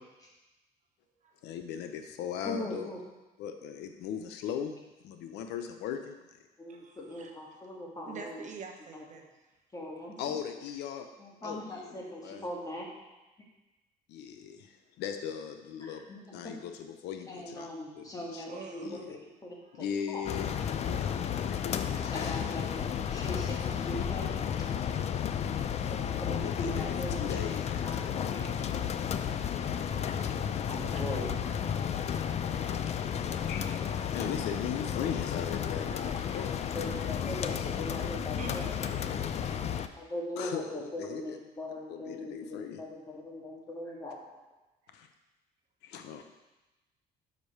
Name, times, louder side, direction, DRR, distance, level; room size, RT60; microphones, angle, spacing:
voice 1, 1.4-2.9 3.4-4.8 5.0-6.4 10.2-11.1 11.4-12.5 14.1-16.0 16.3-17.7 17.9-18.5 18.8-19.2 19.7-20.5 20.8-22.7 26.4-28.1 33.5-33.8 34.1-36.5 40.4-41.4 41.9-42.8 44.9-45.1 45.8-46.2, left 8 dB, 85° left, 6 dB, 0.7 m, -39 dB
voice 2, 2.5-3.0 6.6-8.5 9.7-10.1 11.2-12.9 15.8-16.5 17.3-20.2 22.1-22.8 23.1-24.9 25.6-26.0 26.3-27.2 27.8-28.5 29.7-29.8 30.7-31.3 35.4-36.1 36.7-38.7 39.2-39.3 40.0-44.2, left 1 dB, 20° left, -2 dB, 1.9 m, -40 dB
voice 3, 6.7-7.7 8.1-9.4 10.0-10.3 18.5-19.1 19.6-19.8 30.9-31.3 35.9-37.1 38.4-39.1, right 5 dB, 45° right, 3 dB, 1.0 m, -48 dB
sound 1, 20.3-39.9, left 8 dB, 40° left, 0.4 m, -32 dB
5.3 x 5.2 x 6.4 m, 1.1 s
cardioid pair, 110°, 17 cm